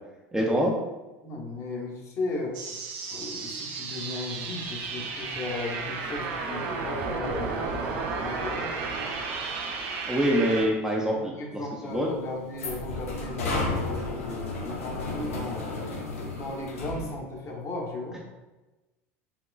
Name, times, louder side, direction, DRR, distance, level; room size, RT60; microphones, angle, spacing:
voice 1, 0.3-0.8 10.1-11.6 11.9-12.1, equal, 5° right, -3 dB, 0.5 m, -25 dB
voice 2, 1.2-2.6 3.1-7.9 8.2-9.1 11.1-16.0 16.3-18.2, left 2 dB, 40° left, -1 dB, 0.9 m, -36 dB
sound 1, 2.5-10.7, right 4 dB, 65° right, 0.6 m, -33 dB
sound 2, 11.9-17.1, left 2 dB, 85° left, 0.7 m, -33 dB
3.6 x 2.9 x 2.3 m, 1.1 s
hypercardioid pair, 85°, 7 cm